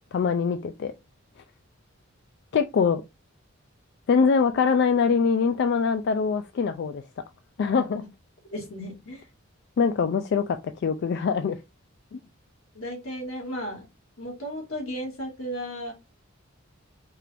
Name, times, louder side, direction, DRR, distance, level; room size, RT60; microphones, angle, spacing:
voice 1, 0.1-0.9 2.5-3.0 4.1-7.0 7.6-8.0 9.8-11.6 12.1-12.2, left 5 dB, 55° left, 0.3 m, -23 dB
voice 2, 8.5-9.2 12.8-13.9 14.2-15.9, equal, 85° left, 1.9 m, -34 dB
4.5 x 2.5 x 3.3 m
head